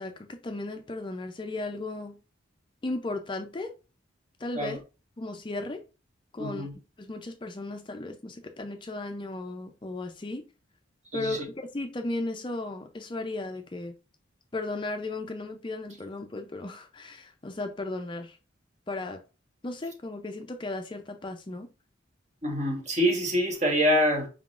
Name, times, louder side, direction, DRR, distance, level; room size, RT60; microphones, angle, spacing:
voice 1, 0.0-2.2 2.8-3.7 4.4-4.8 5.2-5.8 6.3-6.7 7.0-10.4 11.1-13.9 14.5-18.4 18.9-19.2 19.6-21.7, left 2 dB, 25° left, 0.4 m, -35 dB
voice 2, 6.4-6.7 11.1-11.4 22.4-24.3, equal, 35° right, 1.2 m, -25 dB
5.0 x 3.7 x 2.4 m
head